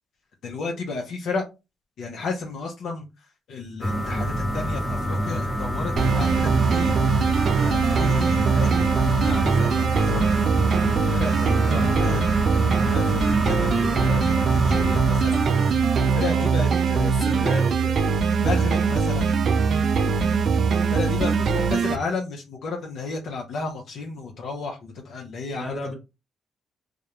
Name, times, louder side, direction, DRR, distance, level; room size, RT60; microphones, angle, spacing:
voice 1, 0.4-1.5 2.0-7.0 7.6-10.4 11.1-12.2 12.8-15.5 16.1-17.6 18.4-19.4 20.9-25.9, left 4 dB, 70° left, 0.5 m, -33 dB
sound 1, 3.8-16.3, equal, 15° left, 0.8 m, -28 dB
sound 2, 6.0-22.0, right 5 dB, 55° right, 0.3 m, -21 dB
voice 2, 11.6-11.9 15.8-15.9 16.2-16.5 17.0-18.0 20.2-20.5 25.5-25.9, left 1 dB, 30° left, 1.1 m, -33 dB
2.3 x 2.1 x 2.9 m
cardioid pair, 90°, 0 cm